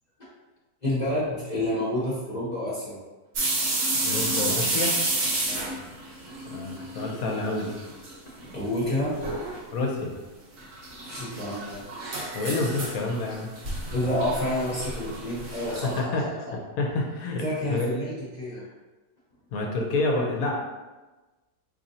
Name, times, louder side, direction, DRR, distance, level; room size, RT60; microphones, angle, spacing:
voice 1, 0.8-3.0 5.4-6.7 8.4-9.8 10.9-12.4 13.9-16.1 16.5-16.6 17.4-18.6, left 1 dB, 35° left, -7 dB, 0.8 m, -30 dB
sound 1, 3.4-7.2 7.4-8.1 8.4-8.5 9.2-9.6 10.6-16.0, right 2 dB, 55° right, 1.1 m, -30 dB
voice 2, 4.1-5.0 6.5-7.8 9.7-10.2 12.3-13.5 15.7-16.2 16.5-17.4 17.7-18.1 18.5-18.6 19.5-20.6, left 2 dB, 70° left, 0 dB, 1.0 m, -28 dB
4.1 x 3.0 x 2.6 m, 1.2 s
omnidirectional pair, 1.6 m